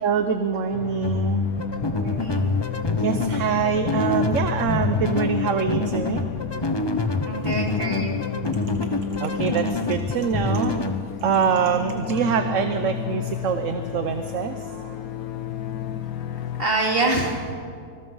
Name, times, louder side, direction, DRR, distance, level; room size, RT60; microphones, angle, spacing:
voice 1, 0.0-1.5 3.0-6.2 9.2-10.7 11.2-14.5, right 6 dB, 60° right, 8 dB, 1.2 m, -24 dB
sound 1, 0.7-16.7, left 8 dB, 70° left, 1.3 m, -32 dB
sound 2, 1.0-11.0, left 3 dB, 25° left, 0.7 m, -26 dB
voice 2, 1.9-2.5 7.2-8.1 16.6-17.4, right 2 dB, 35° right, 0 dB, 3.3 m, -25 dB
25.5 x 19.5 x 5.5 m, 2.3 s
omnidirectional pair, 1.6 m